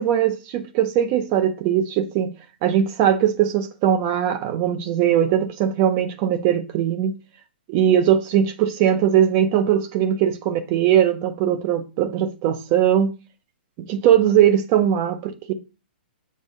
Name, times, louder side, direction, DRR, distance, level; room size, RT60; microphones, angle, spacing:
voice 1, 0.0-2.3 2.6-7.1 7.7-13.1 13.9-15.5, right 10 dB, 20° right, 0.5 m, -20 dB
7.3 x 3.6 x 5.3 m
hypercardioid pair, 180°, 6 cm